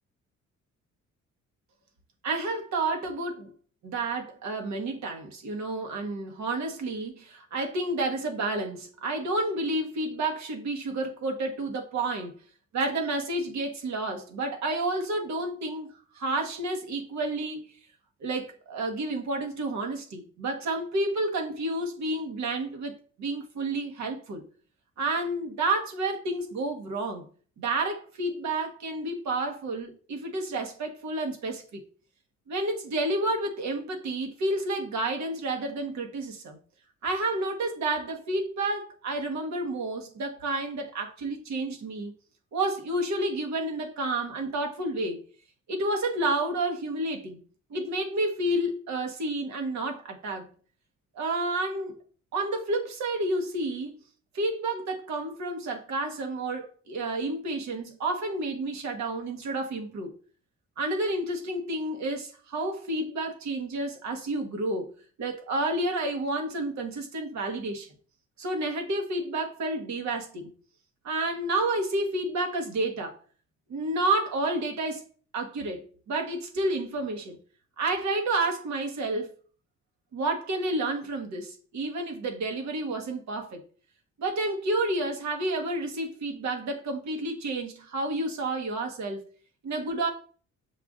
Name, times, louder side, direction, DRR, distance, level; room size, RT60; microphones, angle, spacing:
voice 1, 2.2-3.5 3.8-12.3 12.7-15.9 16.1-17.7 18.2-24.4 25.0-27.2 27.6-31.8 32.5-36.6 37.0-42.1 42.5-45.2 45.7-47.4 47.7-50.5 51.1-52.0 52.3-54.0 54.3-60.1 60.8-64.9 65.2-67.9 68.4-70.5 71.0-73.2 73.7-75.0 75.3-77.4 77.8-79.3 80.1-83.6 84.2-89.2 89.6-90.1, right 2 dB, 65° right, 1.2 m, -30 dB
6.8 x 2.5 x 2.4 m
cardioid pair, 90°, 30 cm